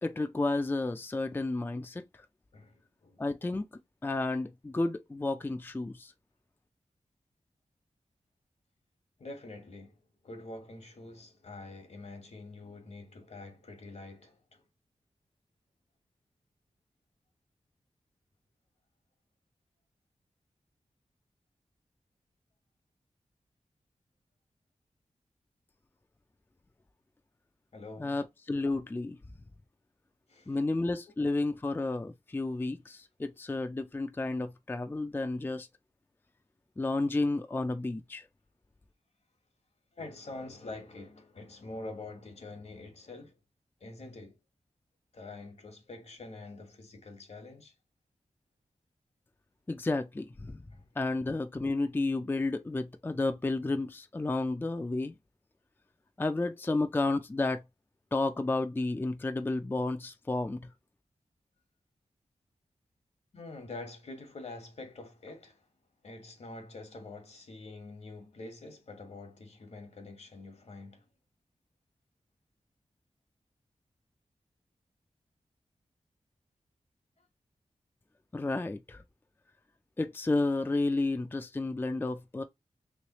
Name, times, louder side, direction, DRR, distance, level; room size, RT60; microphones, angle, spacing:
voice 1, 0.0-2.3 3.2-3.7 4.0-6.1 28.0-29.2 30.5-35.7 36.8-38.3 49.7-50.6 51.0-55.1 56.2-57.6 58.1-60.7 78.3-79.0 80.0-82.4, left 2 dB, 20° left, 0.4 m, -31 dB
voice 2, 2.5-3.2 9.2-14.6 27.7-28.2 30.3-30.6 31.1-31.2 39.9-43.4 43.8-44.4 45.1-47.7 50.7-50.9 63.3-65.7 66.0-71.0 77.2-77.3, left 2 dB, 70° left, 1.2 m, -46 dB
3.2 x 3.1 x 2.9 m
wide cardioid pair, 75°, 12 cm